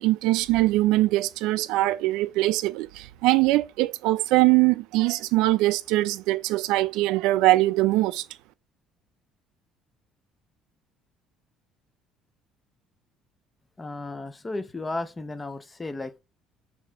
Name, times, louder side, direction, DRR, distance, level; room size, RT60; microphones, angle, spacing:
voice 1, 0.0-8.2, right 18 dB, 80° right, 0.3 m, -22 dB
voice 2, 13.8-16.2, left 2 dB, 15° left, 0.4 m, -34 dB
4.1 x 2.7 x 4.4 m
cardioid pair, 140°, 0 cm